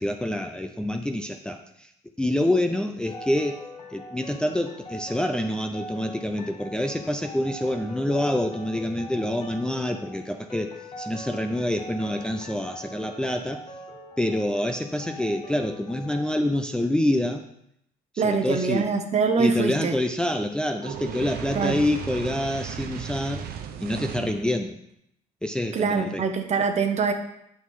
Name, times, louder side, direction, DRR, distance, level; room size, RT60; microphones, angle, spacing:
voice 1, 0.0-1.9 2.2-3.6 3.9-13.6 14.2-17.4 18.1-18.9 19.4-23.5 23.8-24.8 25.4-26.2 26.6-26.7, left 1 dB, 5° left, 4 dB, 0.5 m, -27 dB
sound 1, 3.0-16.4, left 1 dB, 30° left, 1.5 m, -42 dB
voice 2, 18.2-20.0 21.5-21.8 25.7-27.1, right 5 dB, 40° right, 6 dB, 1.0 m, -24 dB
Fire, 20.8-24.5, right 7 dB, 65° right, 0.8 m, -35 dB
9.1 x 6.2 x 3.7 m, 0.76 s
cardioid pair, 110°, 17 cm